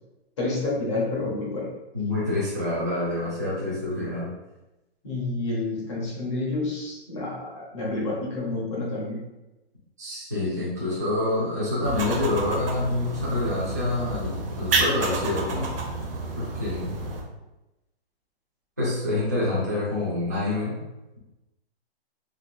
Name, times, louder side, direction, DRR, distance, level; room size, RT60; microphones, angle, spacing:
voice 1, 0.4-1.7 5.0-9.2, left 2 dB, 30° left, -5 dB, 0.9 m, -29 dB
voice 2, 1.9-4.3 10.0-15.8 16.4-17.0 18.8-20.8, left 2 dB, 15° right, -10 dB, 0.3 m, -27 dB
sound 1, 11.8-17.2, right 2 dB, 60° right, 0.7 m, -30 dB
3.7 x 3.0 x 2.3 m, 1.0 s
hypercardioid pair, 170°, 32 cm